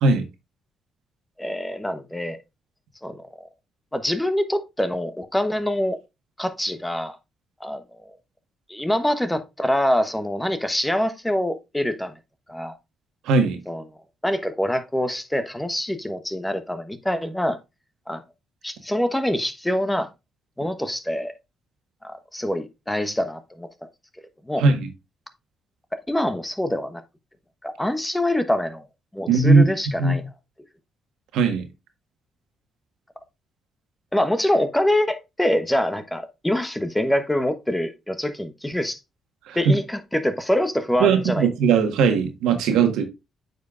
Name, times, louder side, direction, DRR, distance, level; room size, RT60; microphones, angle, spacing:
voice 1, 1.4-2.4 3.0-3.2 3.9-6.0 6.4-7.2 7.6-8.1 8.7-12.2 12.5-12.8 13.7-13.8 14.2-17.6 18.1-18.2 18.6-20.1 20.6-21.3 22.0-23.7 24.4-24.6 25.9-27.0 27.6-28.8 29.1-30.2 34.1-39.0 39.5-41.5, left 1 dB, 10° left, 1.0 m, -25 dB
voice 2, 13.2-13.6 24.6-24.9 29.3-29.6 30.0-30.2 31.3-31.6 39.5-39.8 41.0-43.0, right 4 dB, 90° right, 1.4 m, -18 dB
8.9 x 5.4 x 2.5 m
cardioid pair, 90°, 0 cm